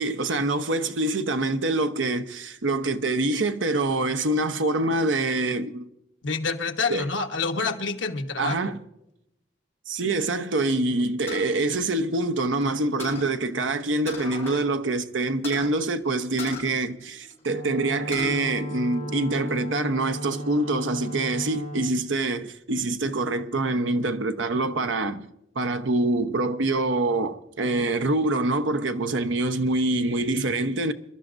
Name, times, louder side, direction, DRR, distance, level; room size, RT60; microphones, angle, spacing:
voice 1, 0.0-5.9 6.9-7.1 8.4-8.8 9.9-25.3 25.5-30.9, right 2 dB, 90° right, 0.9 m, -25 dB
voice 2, 6.2-8.8, left 4 dB, 80° left, 1.3 m, -28 dB
sound 1, 11.3-12.6 13.0-13.3 14.1-14.7 14.9-15.0 15.4-15.7 16.4-17.5 17.9-18.4 18.8-19.6, left 2 dB, 15° left, 6.0 m, -38 dB
Wind instrument woodwind instrument, 17.4-21.9, equal, 35° left, 4.7 m, -35 dB
26.0 x 12.5 x 2.6 m
head